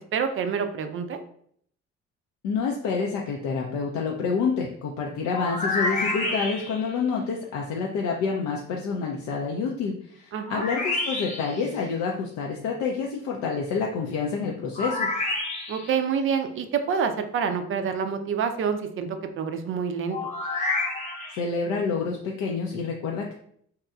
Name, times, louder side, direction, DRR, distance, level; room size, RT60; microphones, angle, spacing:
voice 1, 0.1-1.2 10.3-10.7 15.7-19.1 19.4-20.2, right 6 dB, 40° right, 7 dB, 0.4 m, -27 dB
voice 2, 2.4-15.1 21.3-23.3, left 5 dB, 60° left, -1 dB, 0.5 m, -28 dB
sound 1, 5.3-6.9 10.5-11.6 14.7-16.0 20.1-21.4, left 2 dB, 20° left, 0.8 m, -29 dB
2.9 x 2.3 x 2.3 m, 0.64 s
hypercardioid pair, 50°, 35 cm